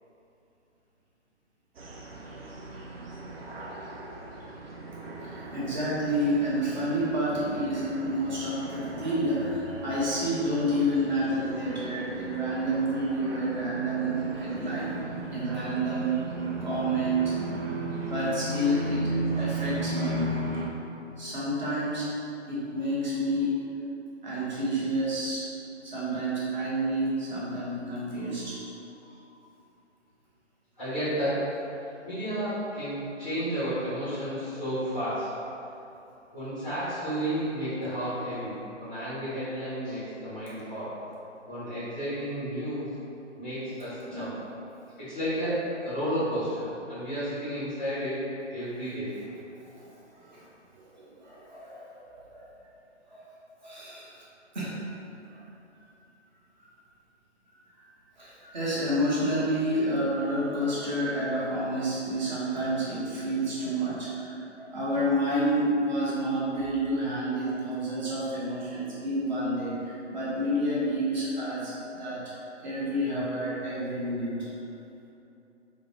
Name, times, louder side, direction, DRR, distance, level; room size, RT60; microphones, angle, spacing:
sound 1, 1.8-20.7, right 2 dB, 55° right, 0.5 m, -36 dB
voice 1, 5.2-15.0 15.3-16.3 16.6-17.4 18.0-20.5 21.2-22.2 22.5-23.6 24.2-25.5 25.8-28.6 44.0-44.3 50.3-50.4 50.9-52.5 53.1-53.2 53.6-54.1 54.5-54.8 55.3-55.4 58.2-74.5, right 1 dB, 40° right, -8 dB, 0.9 m, -29 dB
voice 2, 30.8-31.5 32.0-35.3 36.3-40.9 41.5-42.8 43.4-44.4 45.0-49.1 49.7-49.8, equal, 10° left, -17 dB, 0.5 m, -32 dB
5.0 x 2.1 x 2.7 m, 2.8 s
figure-of-eight pair, 140°, 36 cm